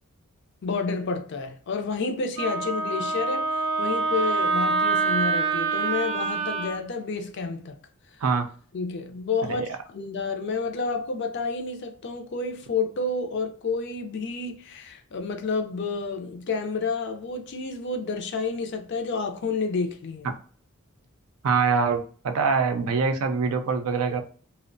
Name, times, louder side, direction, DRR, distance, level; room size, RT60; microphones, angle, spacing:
voice 1, 0.6-7.8 8.7-20.3, left 4 dB, 55° left, 0.4 m, -30 dB
Wind instrument woodwind instrument, 2.4-6.8, right 4 dB, 30° right, 0.5 m, -25 dB
voice 2, 21.4-24.2, right 5 dB, 80° right, 0.4 m, -24 dB
2.5 x 2.1 x 2.5 m
head